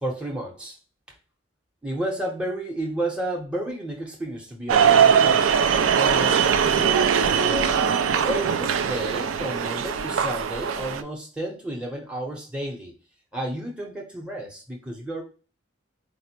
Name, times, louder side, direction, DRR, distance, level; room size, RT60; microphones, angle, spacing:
voice 1, 0.0-0.8 1.8-7.9 8.2-12.9 13.3-15.2, right 1 dB, 5° right, -1 dB, 0.7 m, -32 dB
sound 1, 4.7-11.0, right 7 dB, 85° right, 0.4 m, -21 dB
4.3 x 2.0 x 4.2 m, 0.35 s
head